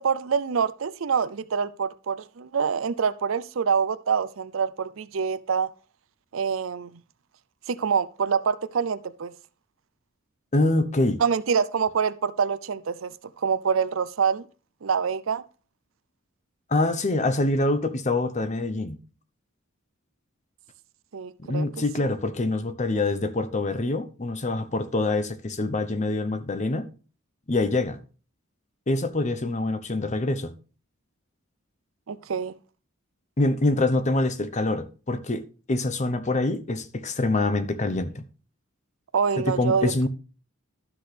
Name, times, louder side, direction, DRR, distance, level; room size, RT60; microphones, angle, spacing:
voice 1, 0.0-5.7 6.3-7.0 7.7-9.3 11.2-13.1 13.4-14.5 14.8-15.4 21.1-21.7 32.1-32.5 39.1-40.1, right 6 dB, 70° right, 0.5 m, -26 dB
voice 2, 10.5-11.2 16.7-19.0 21.4-26.9 27.5-28.0 28.9-30.5 33.4-38.2 39.4-40.1, left 2 dB, 35° left, 0.8 m, -25 dB
12.0 x 6.0 x 3.3 m
head